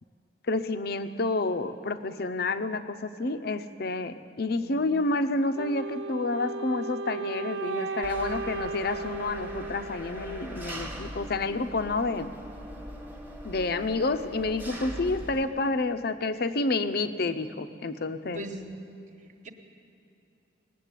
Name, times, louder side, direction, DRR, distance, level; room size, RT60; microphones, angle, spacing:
voice 1, 0.5-12.3 13.4-18.4, left 3 dB, 55° left, 10 dB, 0.6 m, -29 dB
Wind instrument woodwind instrument, 5.5-10.6, right 3 dB, 70° right, 0.4 m, -35 dB
Engine, 8.0-15.4, equal, 10° right, 1.2 m, -41 dB
voice 2, 18.3-18.8 19.2-19.5, right 1 dB, 40° right, 4 dB, 1.2 m, -40 dB
19.5 x 7.6 x 9.1 m, 2.7 s
head